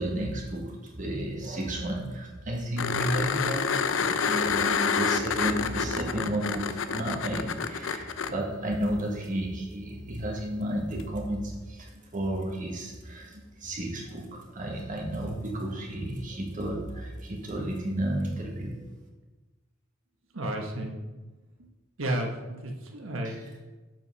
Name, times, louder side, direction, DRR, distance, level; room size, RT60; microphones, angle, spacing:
voice 1, 0.0-18.9 23.2-23.4, right 1 dB, 40° right, -1 dB, 1.5 m, -32 dB
sound 1, 2.8-8.3 11.0-11.1, left 6 dB, 75° left, 0.5 m, -28 dB
voice 2, 20.3-20.9 22.0-23.6, right 1 dB, 90° right, 2 dB, 1.3 m, -32 dB
7.3 x 5.7 x 5.6 m, 1.2 s
head